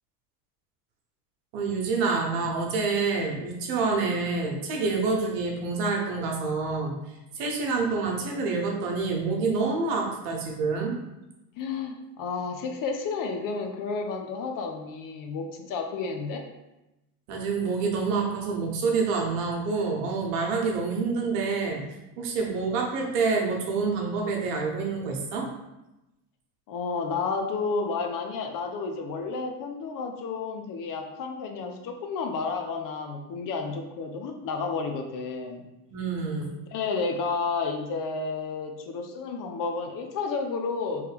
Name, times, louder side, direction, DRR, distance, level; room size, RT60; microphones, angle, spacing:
voice 1, 1.5-11.0 17.3-21.8 22.2-25.5 35.9-36.5, right 4 dB, 75° right, 0 dB, 1.1 m, -27 dB
voice 2, 11.6-16.5 26.7-35.6 36.7-41.1, left 4 dB, 45° left, 4 dB, 0.6 m, -31 dB
3.2 x 3.0 x 3.4 m, 0.95 s
hypercardioid pair, 85°, 47 cm